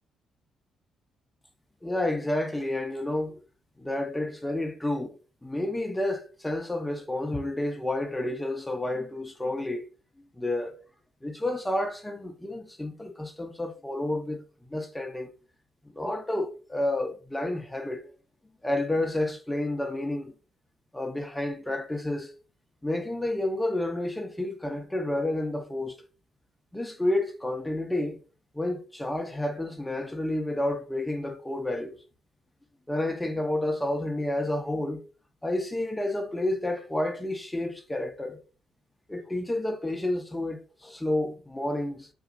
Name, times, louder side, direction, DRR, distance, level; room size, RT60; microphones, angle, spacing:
voice 1, 1.8-3.4 3.8-5.1 5.4-9.9 10.4-10.7 11.2-14.4 14.7-15.3 15.9-18.0 18.6-20.3 20.9-22.3 22.8-26.0 26.7-28.2 28.5-32.0 32.9-35.0 35.4-38.4 39.1-42.1, left 1 dB, 10° left, 0.5 m, -30 dB
3.8 x 2.2 x 2.4 m
cardioid pair, 90°, 0 cm